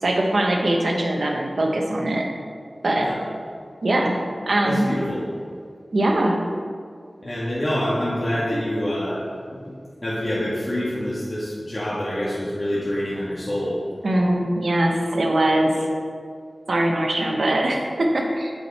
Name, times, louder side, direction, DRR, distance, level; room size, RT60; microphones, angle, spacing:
voice 1, 0.0-2.2 2.8-3.1 3.8-4.2 4.5-4.9 5.9-6.4 14.0-15.9 16.7-18.5, right 1 dB, 75° right, 1 dB, 0.9 m, -21 dB
voice 2, 4.6-5.2 7.2-9.2 9.5-9.7 10.0-13.8, equal, 45° left, -9 dB, 1.6 m, -26 dB
7.9 x 5.1 x 4.2 m, 2.2 s
wide cardioid pair, 45°, 0 cm